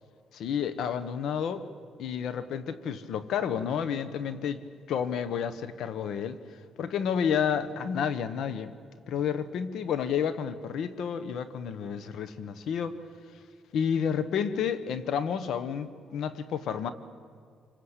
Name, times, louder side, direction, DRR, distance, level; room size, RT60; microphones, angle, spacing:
voice 1, 0.3-1.7 2.0-4.6 4.9-6.4 6.8-8.7 9.1-13.0 13.7-16.9, left 7 dB, 75° left, 13 dB, 1.3 m, -30 dB
26.5 x 24.0 x 8.3 m, 2.2 s
cardioid pair, 90°, 0 cm